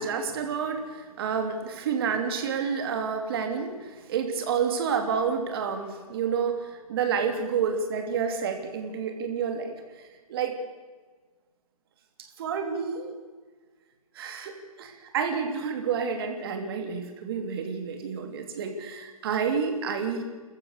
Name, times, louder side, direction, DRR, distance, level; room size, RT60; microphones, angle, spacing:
voice 1, 0.0-9.7 10.3-10.5 12.4-13.1 14.1-20.2, right 6 dB, 40° right, 5 dB, 3.0 m, -29 dB
26.5 x 14.5 x 6.7 m, 1.4 s
hypercardioid pair, 145°, 19 cm